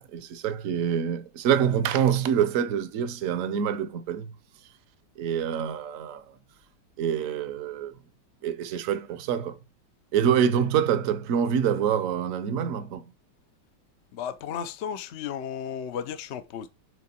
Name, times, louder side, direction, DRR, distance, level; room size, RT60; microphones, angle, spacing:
voice 1, 0.0-4.3 5.2-6.3 7.0-8.0 8.4-9.6 10.1-13.1, right 8 dB, 60° right, 0.9 m, -26 dB
voice 2, 14.1-16.7, left 8 dB, 80° left, 0.6 m, -34 dB
8.4 x 3.7 x 4.3 m
omnidirectional pair, 2.1 m